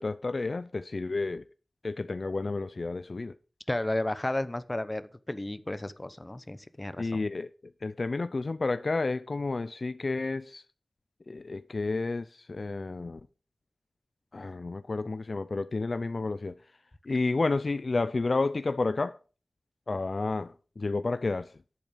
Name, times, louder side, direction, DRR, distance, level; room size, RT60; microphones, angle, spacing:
voice 1, 0.0-1.4 1.8-3.4 7.0-7.5 7.8-10.6 11.3-13.2 14.3-16.6 17.1-19.2 19.9-21.5, left 3 dB, 50° left, 0.4 m, -31 dB
voice 2, 3.7-7.2, left 1 dB, 20° left, 0.8 m, -33 dB
11.0 x 8.4 x 5.1 m
wide cardioid pair, 95°, 0 cm